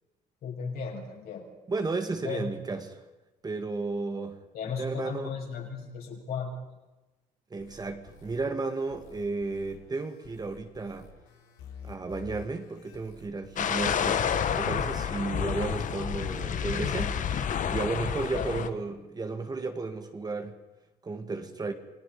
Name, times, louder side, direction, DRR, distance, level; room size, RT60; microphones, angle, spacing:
voice 1, 0.4-1.5 2.2-2.5 4.5-6.5 18.3-18.7, left 5 dB, 65° left, 0 dB, 6.9 m, -35 dB
voice 2, 1.7-3.0 3.4-4.4 4.8-5.3 7.5-11.1 11.8-14.2 14.6-17.2 17.7-20.6 21.0-21.7, right 3 dB, 25° right, 7 dB, 1.8 m, -33 dB
sound 1, 7.6-18.3, left 6 dB, 85° left, 3.9 m, -49 dB
sound 2, 13.6-18.7, left 7 dB, 50° left, 1.4 m, -29 dB
28.0 x 19.0 x 5.4 m, 1.1 s
cardioid pair, 110°, 17 cm